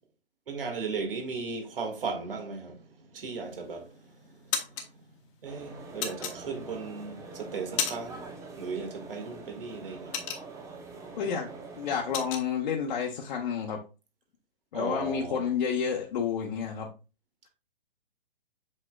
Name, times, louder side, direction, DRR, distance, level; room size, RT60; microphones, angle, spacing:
voice 1, 0.5-4.9 5.4-8.3 8.6-10.2 14.7-15.4, right 4 dB, 65° right, 2.0 m, -36 dB
sound 1, 3.5-3.9 4.3-4.9 6.0-6.9 7.3-8.3 8.5-8.8 9.2-10.9 11.2-11.4 11.7-12.5, left 8 dB, 30° left, 1.1 m, -33 dB
sound 2, 5.4-12.3, right 3 dB, 10° right, 0.7 m, -45 dB
voice 2, 11.2-11.5 11.8-13.8 14.7-16.9, left 7 dB, 50° left, 1.1 m, -30 dB
7.6 x 5.3 x 2.4 m
hypercardioid pair, 130°, 30 cm